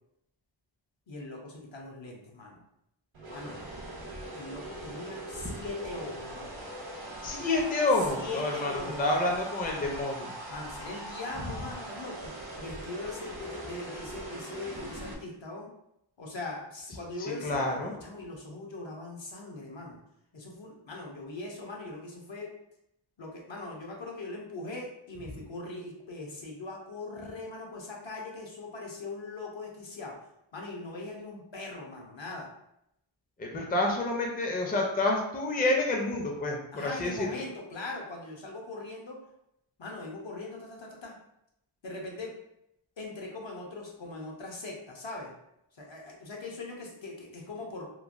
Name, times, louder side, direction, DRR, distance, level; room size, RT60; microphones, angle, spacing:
voice 1, 1.1-2.6 3.3-3.6 4.3-6.6 8.1-9.3 10.5-15.7 16.2-20.0 20.3-22.5 23.2-30.2 30.5-32.5 36.7-39.2 39.8-41.2 41.8-42.3 43.0-45.3 45.7-47.9, left 2 dB, 65° left, -1 dB, 0.7 m, -40 dB
sound 1, 3.1-15.1, right 1 dB, 70° right, 0.8 m, -41 dB
voice 2, 7.2-10.3 17.2-17.9 33.4-37.3, left 2 dB, 20° left, 0 dB, 0.4 m, -28 dB
3.1 x 2.1 x 2.5 m, 0.80 s
wide cardioid pair, 65°, 49 cm